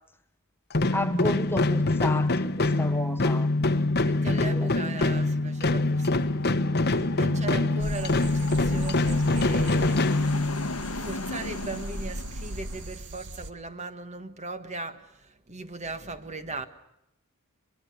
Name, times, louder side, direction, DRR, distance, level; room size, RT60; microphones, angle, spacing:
sound 1, 0.7-10.9, left 2 dB, 45° left, 1.0 m, -25 dB
voice 1, 0.9-3.5 4.5-4.7, left 1 dB, 10° left, 1.0 m, -31 dB
voice 2, 4.0-6.2 6.9-10.4 10.9-16.7, right 3 dB, 30° right, 1.5 m, -38 dB
sound 2, 5.6-13.0, left 3 dB, 75° left, 1.1 m, -38 dB
sound 3, 7.8-13.5, right 1 dB, 55° right, 1.4 m, -38 dB
23.5 x 23.0 x 6.9 m
head